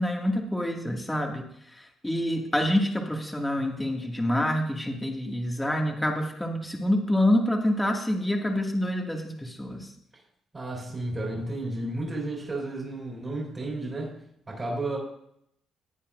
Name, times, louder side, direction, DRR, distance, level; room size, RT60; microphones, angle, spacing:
voice 1, 0.0-1.4 1.8-9.9, left 1 dB, 10° left, 0 dB, 2.2 m, -27 dB
voice 2, 10.5-14.1 14.5-15.0, right 2 dB, 30° right, -4 dB, 5.0 m, -32 dB
18.5 x 8.9 x 2.6 m, 0.72 s
cardioid pair, 90°, 0 cm